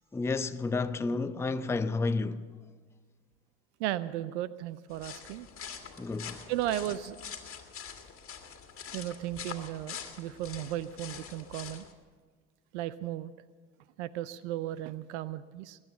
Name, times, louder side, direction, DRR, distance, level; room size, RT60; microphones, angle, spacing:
voice 1, 0.1-2.5 6.0-6.5, left 3 dB, 5° left, 0.5 m, -31 dB
voice 2, 3.8-5.5 6.5-7.2 8.9-11.8 12.7-13.3 14.0-15.8, right 13 dB, 75° right, 0.6 m, -35 dB
sound 1, 4.9-11.9, left 7 dB, 40° left, 2.0 m, -45 dB
21.0 x 9.7 x 6.9 m
hypercardioid pair, 65°, 35 cm